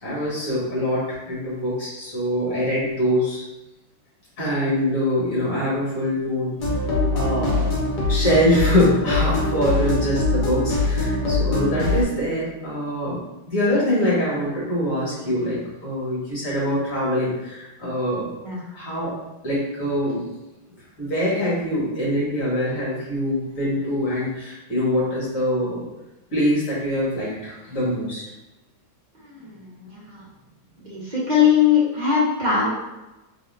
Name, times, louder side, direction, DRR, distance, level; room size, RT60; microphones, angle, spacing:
voice 1, 0.0-3.4 4.4-6.6 7.1-7.7 8.1-13.2 13.5-18.3 18.7-19.1 19.4-20.3 21.0-25.9 26.3-28.2, equal, 40° left, -7 dB, 2.0 m, -24 dB
sound 1, 6.6-12.0, left 2 dB, 60° left, 1.5 m, -22 dB
voice 2, 29.1-30.3 30.8-32.7, left 7 dB, 25° right, -8 dB, 1.1 m, -21 dB
4.1 x 3.4 x 2.6 m, 1.0 s
omnidirectional pair, 2.2 m